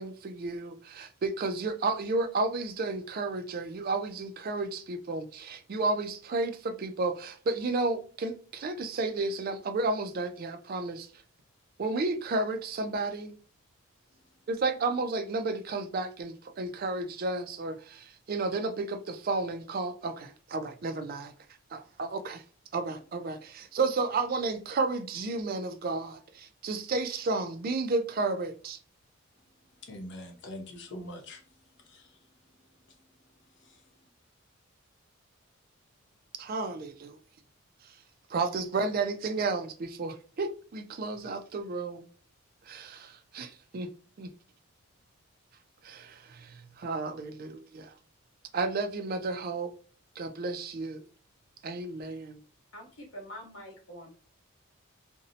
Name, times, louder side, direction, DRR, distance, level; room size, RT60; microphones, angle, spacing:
voice 1, 0.0-11.1 11.8-13.4 14.5-21.3 21.7-22.4 22.7-28.8 36.4-37.2 37.8-37.9 38.3-42.1 42.7-43.9 44.2-44.3 45.8-47.9 48.5-49.7 50.2-51.1 51.6-52.4, right 3 dB, 45° right, 0.3 m, -32 dB
voice 2, 29.8-32.4 32.9-33.0 33.4-34.1, left 1 dB, 55° left, 0.6 m, -45 dB
voice 3, 52.7-54.1, equal, 80° left, 1.1 m, -45 dB
2.5 x 2.0 x 2.6 m
head